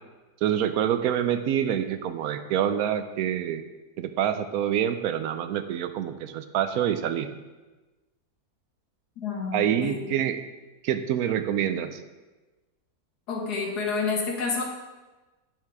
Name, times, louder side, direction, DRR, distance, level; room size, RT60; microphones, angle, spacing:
voice 1, 0.4-3.6 4.0-7.3 9.5-10.4 10.8-12.0, right 10 dB, 75° right, 10 dB, 1.0 m, -26 dB
voice 2, 9.2-10.1 13.3-14.6, left 4 dB, 85° left, 1 dB, 1.9 m, -29 dB
9.1 x 5.7 x 4.7 m, 1.2 s
omnidirectional pair, 1.7 m